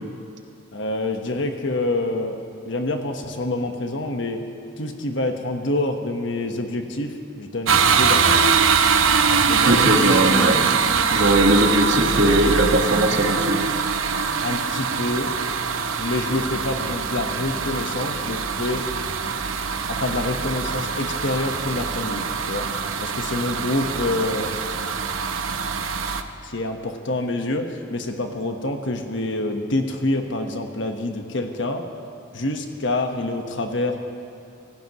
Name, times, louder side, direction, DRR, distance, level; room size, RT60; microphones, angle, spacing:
voice 1, 0.7-2.4 2.7-4.4 4.8-8.5 9.3-10.1 14.4-15.3 16.0-18.8 19.9-22.7 23.0-24.5 26.1-26.2 26.4-31.8 32.3-34.0, left 2 dB, 65° left, 4 dB, 1.3 m, -27 dB
sound 1, 7.7-26.2, right 5 dB, 90° right, 0.9 m, -23 dB
voice 2, 9.7-10.7 11.1-13.7, right 1 dB, 65° right, 2 dB, 1.7 m, -19 dB
26.0 x 16.5 x 3.1 m, 2.4 s
head